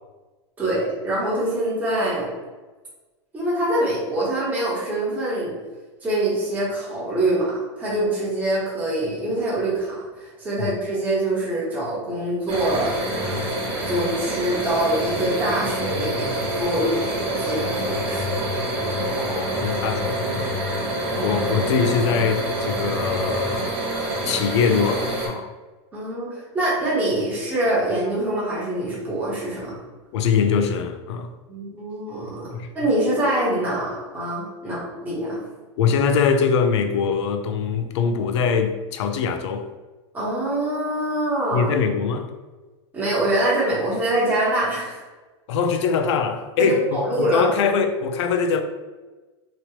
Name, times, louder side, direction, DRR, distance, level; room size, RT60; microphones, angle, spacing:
voice 1, 0.6-2.3 3.3-5.5 6.0-13.2 13.8-18.2 21.2-21.4 25.9-29.7 31.5-32.5 32.7-35.4 40.1-41.7 42.9-45.0 46.6-47.4, right 1 dB, 10° right, 1.0 m, -24 dB
sound 1, 12.5-25.3, right 1 dB, 35° right, 1.1 m, -26 dB
voice 2, 19.1-20.6 21.2-23.8 24.2-25.5 30.1-31.3 32.5-32.7 35.8-39.7 41.5-42.3 45.5-48.6, left 6 dB, 75° left, 0.4 m, -22 dB
3.0 x 2.9 x 2.8 m
supercardioid pair, 165°, 15 cm